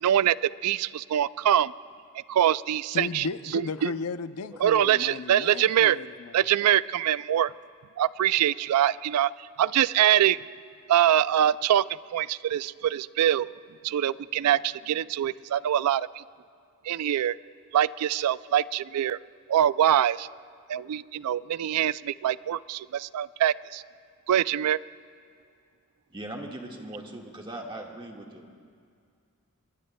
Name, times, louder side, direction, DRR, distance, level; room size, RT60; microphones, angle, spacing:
voice 1, 0.0-1.7 2.3-3.3 3.5-3.9 4.6-6.0 6.3-7.5 8.0-10.4 10.9-11.9 12.1-13.5 13.8-16.2 16.8-17.4 17.7-19.2 19.5-20.3 20.7-23.8 24.3-24.8, right 11 dB, 90° right, 19 dB, 0.3 m, -24 dB
voice 2, 2.9-6.4, left 4 dB, 80° left, 12 dB, 0.5 m, -35 dB
voice 3, 26.1-28.6, right 1 dB, 25° right, 0 dB, 1.7 m, -39 dB
26.0 x 22.0 x 2.2 m, 2.2 s
head